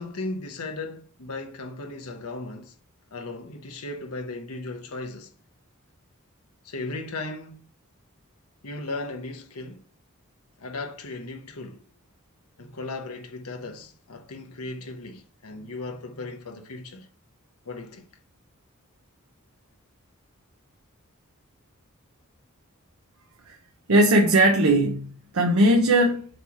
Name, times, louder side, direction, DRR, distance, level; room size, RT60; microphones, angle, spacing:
voice 1, 0.0-2.7 3.1-5.3 6.6-7.6 8.6-9.8 10.6-11.8 12.6-17.1 17.6-18.1, left 2 dB, 80° left, 1.0 m, -36 dB
voice 2, 23.9-26.3, right 1 dB, 75° right, 1.0 m, -19 dB
7.7 x 3.2 x 5.9 m
head